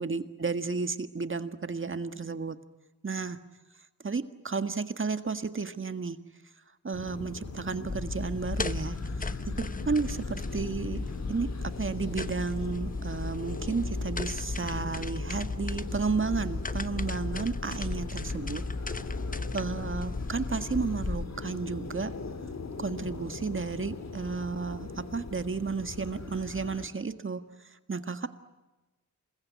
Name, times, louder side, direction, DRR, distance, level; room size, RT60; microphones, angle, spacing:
voice 1, 0.0-2.6 3.0-3.4 4.0-6.2 6.8-9.0 9.9-11.0 11.3-18.6 19.5-22.1 22.8-27.4 27.9-28.3, right 4 dB, 40° right, 9 dB, 1.8 m, -32 dB
sound 1, 6.9-26.9, left 4 dB, 60° left, 3.0 m, -41 dB
sound 2, 7.9-21.2, left 3 dB, 25° left, 1.0 m, -35 dB
28.5 x 22.0 x 9.5 m, 1.1 s
cardioid pair, 75°, 31 cm